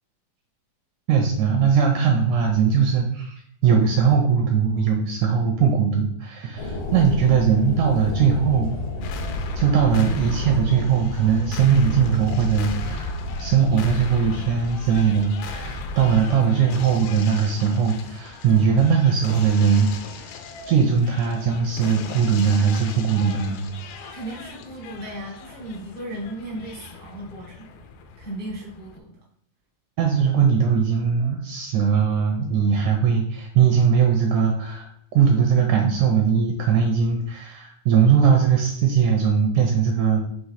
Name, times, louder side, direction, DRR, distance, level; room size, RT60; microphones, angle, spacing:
voice 1, 1.1-3.4 3.6-8.7 9.6-13.1 13.4-19.9 20.7-23.6 30.0-40.2, right 6 dB, 80° right, 3 dB, 1.8 m, -20 dB
sound 1, 6.6-14.0, equal, 70° left, 1.5 m, -32 dB
sound 2, 9.0-29.0, left 3 dB, 85° left, 2.5 m, -36 dB
voice 2, 24.0-27.7 28.2-29.2, right 1 dB, 45° left, -4 dB, 0.4 m, -36 dB
6.0 x 3.2 x 5.6 m, 0.65 s
omnidirectional pair, 4.2 m